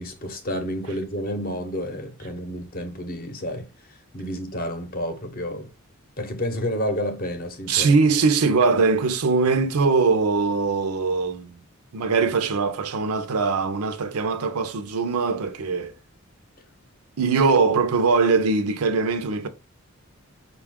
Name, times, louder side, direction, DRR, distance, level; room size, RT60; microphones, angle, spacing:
voice 1, 0.0-5.7 6.2-7.9, equal, 40° left, 0.7 m, -30 dB
voice 2, 7.7-11.6 11.9-15.9 17.2-19.5, right 4 dB, 85° right, 0.6 m, -21 dB
5.2 x 2.3 x 3.5 m
head